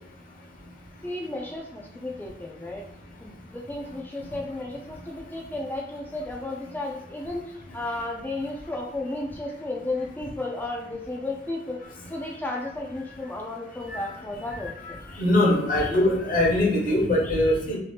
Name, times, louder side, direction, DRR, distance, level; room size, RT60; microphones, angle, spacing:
voice 1, 1.0-2.8 3.2-11.8 12.1-15.0 15.7-15.9, left 2 dB, 10° left, -1 dB, 0.4 m, -33 dB
voice 2, 15.2-17.8, left 1 dB, 50° left, -1 dB, 0.9 m, -22 dB
2.7 x 2.4 x 3.2 m, 0.88 s
head